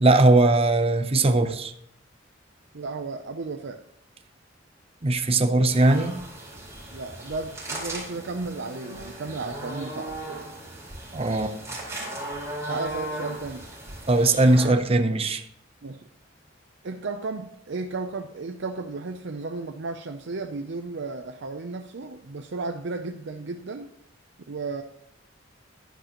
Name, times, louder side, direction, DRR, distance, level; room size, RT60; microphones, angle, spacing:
voice 1, 0.0-1.7 5.0-6.2 11.1-11.5 14.1-15.4, right 2 dB, 30° right, 0.7 m, -20 dB
voice 2, 2.7-3.8 6.9-10.2 12.7-13.6 15.8-16.1 16.8-23.9 24.5-24.8, right 3 dB, 65° right, 0.6 m, -34 dB
sound 1, 5.7-14.7, right 1 dB, 15° right, 4.4 m, -37 dB
11.0 x 10.0 x 3.0 m
head